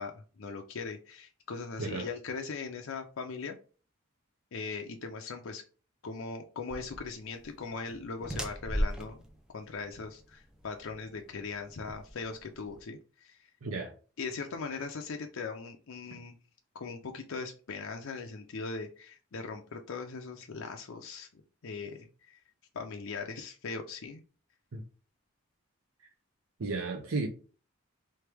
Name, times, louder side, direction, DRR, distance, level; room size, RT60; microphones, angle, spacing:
voice 1, 0.0-3.6 4.5-5.6 6.0-9.2 9.5-13.5 14.2-16.3 16.7-22.4 22.7-24.2, left 4 dB, 75° left, 0.5 m, -40 dB
sound 1, 6.7-12.8, equal, 5° right, 0.4 m, -38 dB
voice 2, 13.6-13.9 24.7-24.8 26.6-27.3, right 3 dB, 85° right, 0.7 m, -33 dB
3.5 x 3.2 x 3.3 m
head